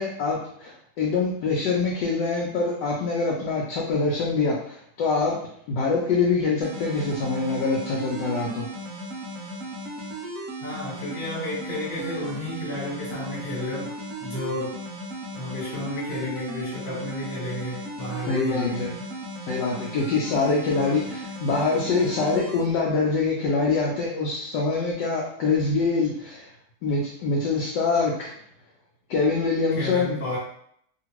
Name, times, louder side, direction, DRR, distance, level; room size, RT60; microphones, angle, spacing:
voice 1, 0.0-5.4 5.7-8.7 18.3-18.9 19.4-26.5 26.8-28.3 29.1-30.2, left 4 dB, 70° left, -3 dB, 1.1 m, -24 dB
sound 1, 6.6-22.6, right 1 dB, 70° right, 0.8 m, -36 dB
voice 2, 10.6-14.8 15.3-18.9 20.7-20.9 29.7-30.4, left 1 dB, 30° left, -6 dB, 1.2 m, -32 dB
2.8 x 2.8 x 2.9 m, 0.68 s
omnidirectional pair, 2.1 m